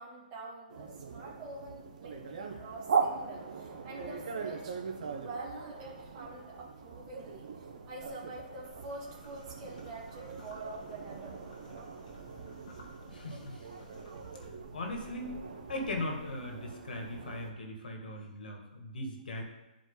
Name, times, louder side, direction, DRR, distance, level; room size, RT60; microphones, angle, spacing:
voice 1, 0.0-12.0, right 2 dB, 20° right, -6 dB, 2.0 m, -46 dB
sound 1, 0.7-17.5, right 5 dB, 50° right, 1.1 m, -40 dB
sound 2, 8.6-14.5, equal, 50° left, 1.9 m, -56 dB
voice 2, 13.1-13.8 14.7-15.4 15.7-19.4, left 1 dB, 70° left, 2 dB, 2.2 m, -39 dB
10.5 x 5.0 x 4.0 m, 1.0 s
hypercardioid pair, 175°, 5 cm